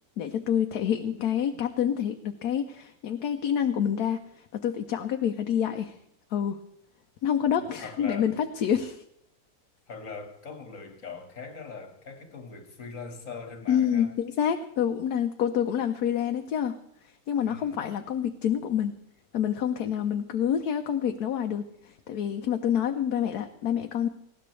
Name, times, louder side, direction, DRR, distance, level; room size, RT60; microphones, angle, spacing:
voice 1, 0.2-4.2 4.5-5.9 6.3-6.6 7.2-9.0 13.7-16.8 17.3-18.9 19.3-24.1, left 9 dB, 80° left, 1.2 m, -27 dB
voice 2, 7.8-8.4 9.9-14.1 17.4-17.8, left 4 dB, 60° left, 2.0 m, -41 dB
19.5 x 16.0 x 3.2 m
omnidirectional pair, 1.6 m